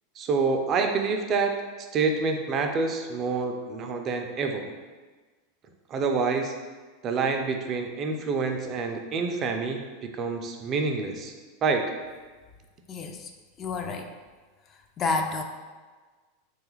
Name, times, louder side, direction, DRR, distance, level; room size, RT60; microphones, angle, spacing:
voice 1, 0.2-1.5 1.9-4.7 5.9-6.5 7.0-11.3 11.6-11.9, right 4 dB, 40° right, 4 dB, 0.4 m, -27 dB
voice 2, 12.9-13.3 13.6-14.1 15.0-15.4, left 4 dB, 35° left, 4 dB, 0.3 m, -29 dB
3.2 x 2.3 x 3.0 m, 1.4 s
hypercardioid pair, 100°, 0 cm